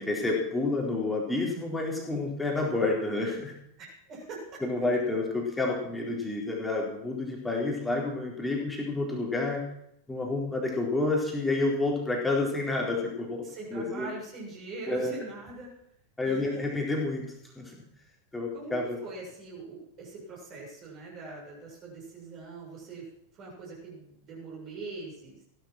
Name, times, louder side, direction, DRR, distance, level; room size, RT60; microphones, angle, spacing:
voice 1, 0.0-3.5 4.6-9.6 10.1-13.4 13.7-14.1 14.9-15.1 16.2-17.3 17.6-17.7 18.3-19.0, left 2 dB, 5° left, -1 dB, 4.1 m, -29 dB
voice 2, 3.8-4.6 13.4-15.7 16.2-16.6 18.5-18.7 19.0-23.0 23.3-25.4, right 3 dB, 35° right, -3 dB, 7.3 m, -42 dB
16.5 x 12.5 x 6.0 m, 0.74 s
figure-of-eight pair, 90°, 0 cm